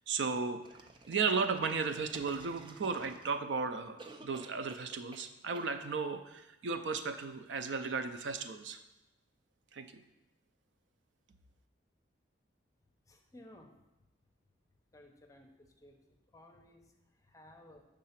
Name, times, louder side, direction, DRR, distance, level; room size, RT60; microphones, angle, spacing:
voice 1, 0.1-0.6 1.1-8.8 9.7-10.0, right 5 dB, 75° right, 8 dB, 0.5 m, -35 dB
sound 1, 0.6-3.5 4.0-5.3 5.5-5.7, right 3 dB, 25° right, 0.4 m, -53 dB
voice 2, 13.1-13.7 14.9-15.5 15.8-16.0 16.3-16.8 17.2-17.8, left 1 dB, 20° left, 2 dB, 0.6 m, -56 dB
6.6 x 3.7 x 5.7 m, 0.95 s
head